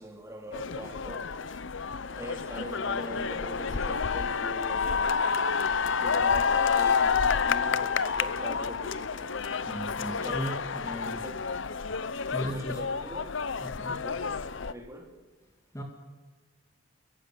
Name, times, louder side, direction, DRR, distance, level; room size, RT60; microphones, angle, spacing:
voice 1, 0.0-1.6 2.0-5.0 5.8-9.3 10.2-10.7 10.9-11.4 12.3-13.4 14.0-14.3 14.7-15.2, equal, 15° right, 3.1 m, -42 dB
sound 1, 0.5-14.7, left 5 dB, 60° left, 0.7 m, -29 dB
voice 2, 9.6-11.2 12.3-12.8 13.6-14.0 15.7-15.8, equal, 15° left, 2.4 m, -36 dB
30.0 x 15.0 x 9.5 m
head